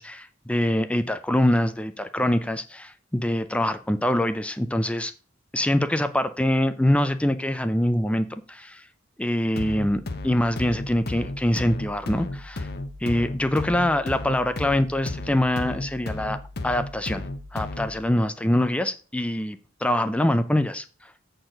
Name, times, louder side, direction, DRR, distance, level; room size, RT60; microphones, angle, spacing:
voice 1, 0.0-5.1 5.5-8.8 9.2-12.7 13.0-16.4 16.6-17.2 17.5-20.8, left 1 dB, 5° left, 0.5 m, -24 dB
sound 1, 9.6-18.0, left 2 dB, 55° left, 0.9 m, -34 dB
7.7 x 4.5 x 6.4 m
head